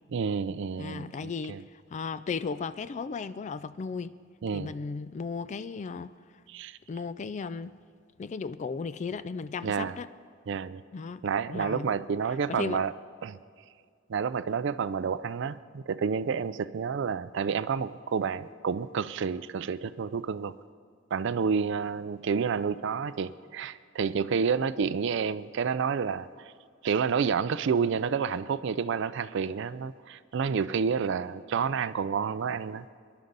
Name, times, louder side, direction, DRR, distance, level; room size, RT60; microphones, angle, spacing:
voice 1, 0.1-1.6 4.4-4.7 6.5-6.8 9.6-10.0 10.5-10.8 11.2-12.9 13.2-13.4 14.1-20.5 21.1-26.5 26.8-32.9, right 6 dB, 65° right, 14 dB, 0.4 m, -29 dB
voice 2, 0.8-4.1 4.5-6.1 6.9-7.7 8.2-10.1 10.9-11.2 11.5-11.9 12.5-12.8, left 5 dB, 40° left, 14 dB, 0.3 m, -35 dB
23.5 x 11.0 x 4.0 m, 2.1 s
head